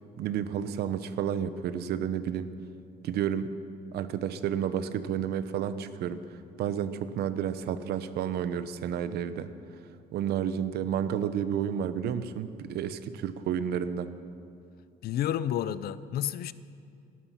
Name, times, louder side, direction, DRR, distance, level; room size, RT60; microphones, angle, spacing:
voice 1, 0.2-2.5 3.0-3.5 3.9-6.2 6.6-9.5 10.1-14.1, right 9 dB, 70° right, 12 dB, 0.9 m, -31 dB
voice 2, 15.0-16.5, left 11 dB, 65° left, 16 dB, 0.6 m, -30 dB
18.5 x 12.5 x 5.7 m, 2.4 s
cardioid pair, 110°, 17 cm